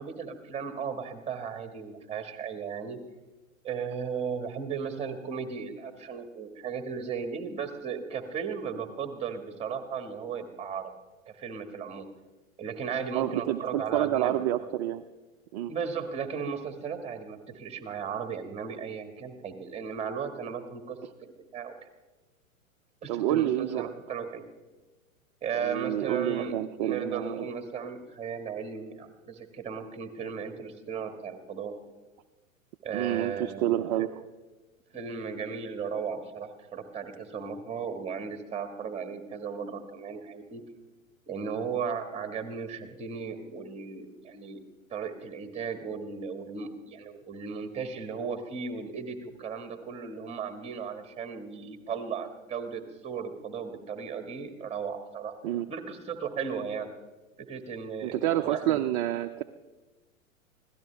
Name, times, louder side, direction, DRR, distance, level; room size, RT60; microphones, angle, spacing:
voice 1, 0.0-3.0 3.6-10.9 11.4-12.0 12.6-14.4 15.7-21.7 23.0-24.4 25.4-31.7 32.8-34.1 34.9-40.6 41.3-44.6 44.9-55.4 55.7-56.9 57.5-58.8, right 6 dB, 15° right, 7 dB, 1.7 m, -36 dB
voice 2, 13.1-15.0 15.5-15.7 23.1-23.9 25.5-27.5 32.9-34.1 55.4-55.7 58.0-59.4, right 13 dB, 30° right, 7 dB, 0.5 m, -28 dB
25.0 x 16.5 x 3.4 m, 1.2 s
figure-of-eight pair, 105°, 41 cm